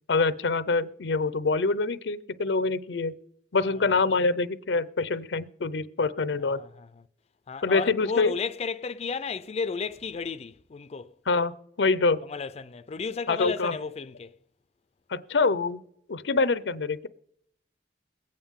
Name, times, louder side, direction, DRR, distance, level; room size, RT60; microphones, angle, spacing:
voice 1, 0.1-3.1 3.5-6.6 7.6-8.3 11.3-11.5 11.8-12.2 13.3-13.7 15.1-15.8 16.1-17.1, left 3 dB, 90° left, 0.6 m, -25 dB
voice 2, 3.6-4.0 6.4-7.0 7.5-11.2 12.2-14.4, left 5 dB, 35° left, 0.4 m, -34 dB
22.0 x 8.8 x 3.7 m
head